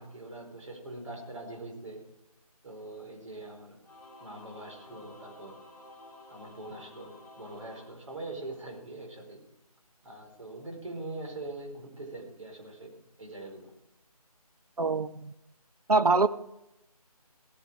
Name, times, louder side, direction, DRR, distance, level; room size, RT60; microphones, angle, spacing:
voice 1, 0.0-2.0 2.6-3.8 4.2-5.6 6.3-9.4 10.0-13.7, right 2 dB, 55° right, 1 dB, 4.8 m, -43 dB
Singing / Musical instrument, 3.8-8.7, left 1 dB, ahead, 1.8 m, -52 dB
voice 2, 14.8-15.3 15.9-16.3, right 3 dB, 75° right, 13 dB, 1.1 m, -24 dB
17.0 x 9.7 x 4.9 m, 0.86 s
figure-of-eight pair, 175°, 20 cm